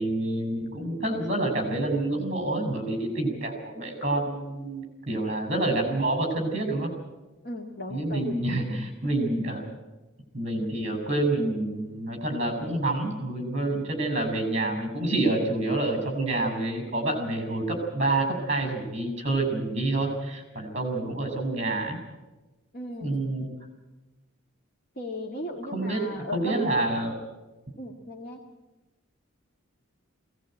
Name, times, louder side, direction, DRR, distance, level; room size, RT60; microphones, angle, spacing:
voice 1, 0.0-6.9 7.9-9.6 10.3-22.0 23.0-23.4 25.7-27.1, right 2 dB, 30° right, 4 dB, 6.5 m, -28 dB
voice 2, 7.4-8.3 22.7-23.4 25.0-26.7 27.8-28.4, left 1 dB, 45° left, 0 dB, 1.9 m, -37 dB
21.0 x 18.0 x 9.0 m, 1.1 s
head